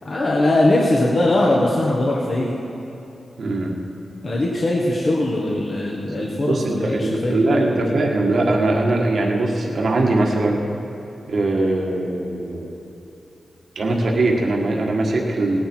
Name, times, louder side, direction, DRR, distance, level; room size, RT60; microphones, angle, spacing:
voice 1, 0.0-2.5 4.2-7.8, left 1 dB, 55° left, -3 dB, 1.6 m, -20 dB
voice 2, 3.4-3.8 6.4-10.6 11.3-12.7 13.7-15.6, right 2 dB, 65° right, 0 dB, 1.7 m, -21 dB
17.5 x 10.5 x 4.6 m, 3.0 s
cardioid pair, 70°, 0 cm